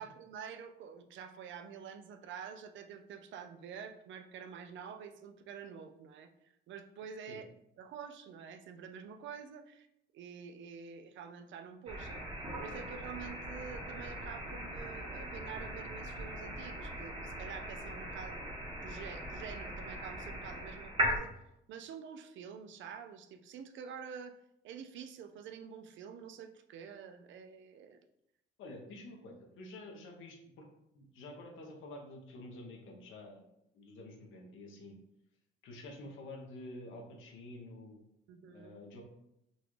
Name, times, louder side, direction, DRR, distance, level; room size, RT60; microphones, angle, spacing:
voice 1, 0.0-7.5 7.8-9.9 10.1-12.2 12.6-18.6 18.8-21.4 21.7-24.4 24.6-28.0 38.3-38.7, right 7 dB, 70° right, 8 dB, 0.4 m, -48 dB
sound 1, 11.9-21.2, right 1 dB, 25° right, 1.0 m, -39 dB
voice 2, 28.6-30.7 30.9-33.4 33.7-34.9 35.6-38.0 38.5-39.0, left 2 dB, 85° left, 1 dB, 0.8 m, -49 dB
3.9 x 2.3 x 3.1 m, 0.81 s
cardioid pair, 90°, 20 cm